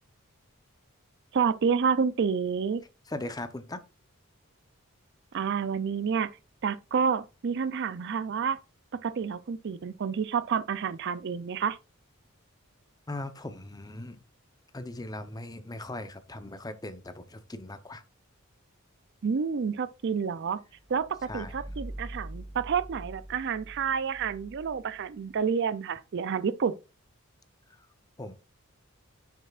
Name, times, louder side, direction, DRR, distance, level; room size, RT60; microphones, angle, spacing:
voice 1, 1.3-2.8 5.3-6.3 6.6-8.6 8.9-11.8 19.2-20.6 20.9-26.7, right 6 dB, 55° right, 0.4 m, -29 dB
voice 2, 3.1-3.8 13.1-14.2 14.7-18.0 21.3-21.5 27.8-27.9 28.2-28.3, left 2 dB, 20° left, 0.7 m, -39 dB
sound 1, 20.8-25.4, right 1 dB, 5° right, 1.4 m, -44 dB
8.5 x 6.7 x 2.4 m
head